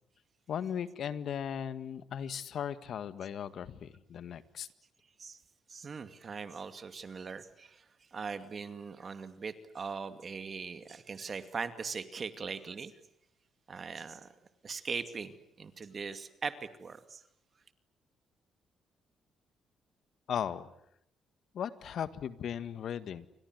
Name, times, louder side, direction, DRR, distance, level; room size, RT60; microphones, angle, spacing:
voice 1, 0.5-4.7 20.3-20.7 21.5-23.3, left 8 dB, 65° left, 13 dB, 1.8 m, -37 dB
voice 2, 5.7-12.9 13.7-14.3 14.6-17.2, right 5 dB, 40° right, 10 dB, 2.4 m, -40 dB
29.5 x 25.0 x 8.1 m, 0.76 s
cardioid pair, 90°, 0 cm